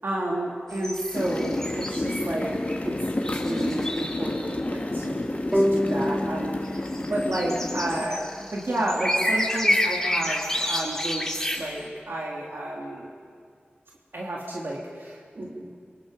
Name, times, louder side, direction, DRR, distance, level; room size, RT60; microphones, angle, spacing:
voice 1, 0.0-13.1 14.1-15.7, right 1 dB, 75° right, -3 dB, 3.2 m, -31 dB
sound 1, 0.7-4.6 4.8-4.9 5.9-6.0 6.4-11.8, left 1 dB, 15° left, 3.2 m, -29 dB
sound 2, 1.1-8.1, left 2 dB, 45° left, 2.0 m, -30 dB
sound 3, 5.5-8.8, equal, 15° right, 2.3 m, -29 dB
29.0 x 24.5 x 5.3 m, 2.1 s
wide cardioid pair, 70°, 4 cm